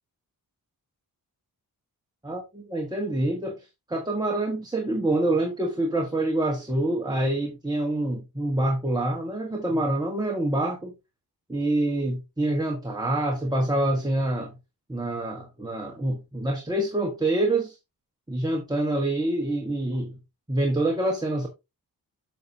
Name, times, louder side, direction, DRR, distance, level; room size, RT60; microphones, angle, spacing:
voice 1, 2.2-3.5 3.9-10.9 11.5-14.5 14.9-17.7 18.3-20.1 20.5-21.5, right 1 dB, 10° right, 1.3 m, -26 dB
7.7 x 6.6 x 2.7 m
wide cardioid pair, 145°, 38 cm